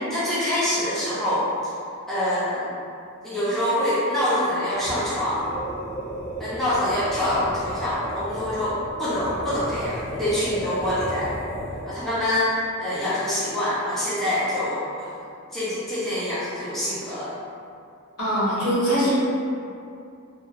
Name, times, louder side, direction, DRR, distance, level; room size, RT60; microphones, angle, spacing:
voice 1, 0.1-1.5 2.1-2.7 3.2-5.5 6.4-11.3 11.9-12.5 12.8-15.1 15.5-17.3, left 1 dB, ahead, -12 dB, 0.6 m, -25 dB
sound 1, 4.7-12.1, right 1 dB, 35° right, 0.7 m, -34 dB
voice 2, 18.2-19.1, equal, 85° left, -9 dB, 1.0 m, -22 dB
2.8 x 2.4 x 2.5 m, 2.5 s
head